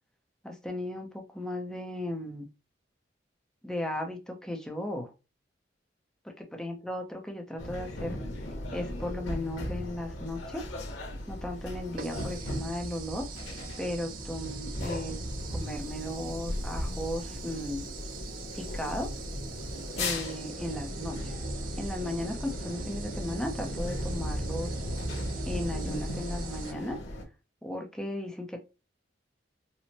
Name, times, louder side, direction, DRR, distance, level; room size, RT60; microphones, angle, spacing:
voice 1, 0.4-2.5 3.6-5.1 6.6-8.2 8.7-10.7 11.3-13.3 13.8-15.2 15.5-17.9 18.6-19.1 20.0-21.3 21.8-22.4 22.6-24.7 25.5-27.0 27.6-28.6, left 1 dB, 5° left, 0.6 m, -36 dB
sound 1, 7.6-27.2, left 1 dB, 90° left, 0.9 m, -36 dB
sound 2, 11.3-11.4 12.0-26.7, right 8 dB, 50° right, 0.4 m, -46 dB
4.3 x 2.0 x 2.9 m
head